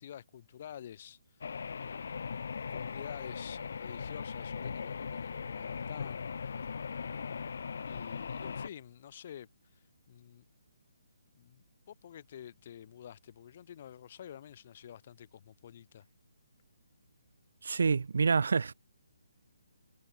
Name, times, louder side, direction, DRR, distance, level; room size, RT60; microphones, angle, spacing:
voice 1, 0.0-2.1 2.7-6.3 6.6-6.7 7.0-7.4 7.8-10.4 11.3-16.1, left 10 dB, 35° left, 3.6 m, -49 dB
sound 1, 1.4-8.7, left 6 dB, 60° left, 4.3 m, -39 dB
voice 2, 17.6-18.7, right 5 dB, 70° right, 0.5 m, -27 dB
hypercardioid pair, 165°, 0 cm